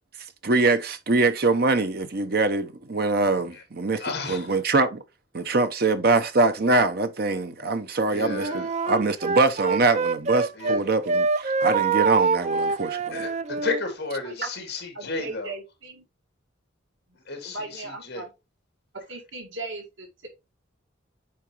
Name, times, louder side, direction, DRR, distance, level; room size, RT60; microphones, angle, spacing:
voice 1, 0.4-5.0 5.3-13.3, right 3 dB, 50° right, 0.8 m, -23 dB
voice 2, 4.0-4.5 8.1-8.7 10.5-10.8 13.1-15.5 17.3-18.2, left 3 dB, 55° left, 2.8 m, -33 dB
Wind instrument woodwind instrument, 8.2-10.8 11.1-13.8, right 4 dB, 35° right, 0.3 m, -25 dB
voice 3, 14.9-16.0 17.4-18.3 19.1-20.3, right 3 dB, 80° right, 1.9 m, -38 dB
8.7 x 4.5 x 3.0 m
head